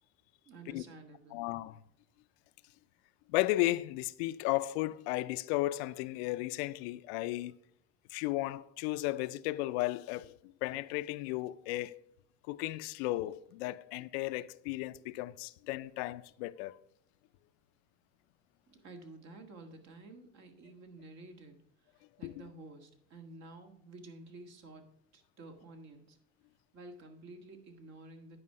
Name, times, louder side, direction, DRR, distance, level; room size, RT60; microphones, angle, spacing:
voice 1, 0.4-1.4 18.7-24.8 25.1-26.2 26.7-28.4, right 2 dB, 55° right, 1.7 m, -51 dB
voice 2, 1.3-1.8 3.3-7.5 8.1-10.3 10.6-12.0 12.5-16.8 22.2-22.3, left 17 dB, 90° left, 0.5 m, -34 dB
9.8 x 5.0 x 5.5 m
supercardioid pair, 105°, 31 cm